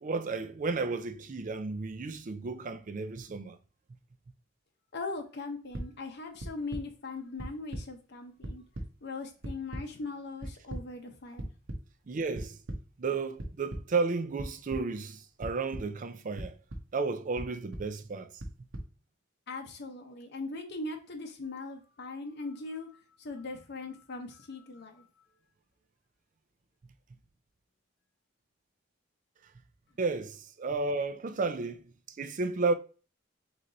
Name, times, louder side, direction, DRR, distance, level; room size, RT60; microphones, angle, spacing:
voice 1, 0.0-3.6 12.1-12.6 13.0-16.6 16.9-18.3 30.0-32.7, right 4 dB, 40° right, 0.4 m, -33 dB
voice 2, 4.9-8.6 9.0-11.5 19.5-25.0, left 3 dB, 60° left, 0.7 m, -40 dB
sound 1, 5.7-5.8 6.4-6.8 7.4-7.8 8.2-8.9 9.4-9.8 10.4-10.8 11.4-11.8 12.3-12.8 13.4-13.8 14.4-14.8 15.4-15.8 16.4-16.8 17.4-17.8 18.4-18.8, right 1 dB, 80° right, 0.9 m, -37 dB
3.9 x 3.2 x 3.9 m
head